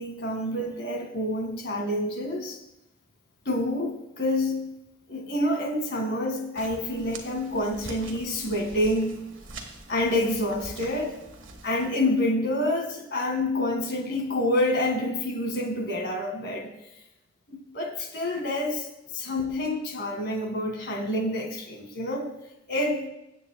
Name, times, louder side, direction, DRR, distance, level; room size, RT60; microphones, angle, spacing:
voice 1, 0.0-2.6 3.5-4.7 5.1-9.2 9.9-11.2 11.6-16.7 17.5-18.9 19.1-22.3 22.7-23.1, left 1 dB, 55° left, 3 dB, 2.0 m, -28 dB
sound 1, 6.5-11.9, right 2 dB, 70° right, 1.5 m, -44 dB
17.5 x 8.7 x 2.3 m, 0.88 s
head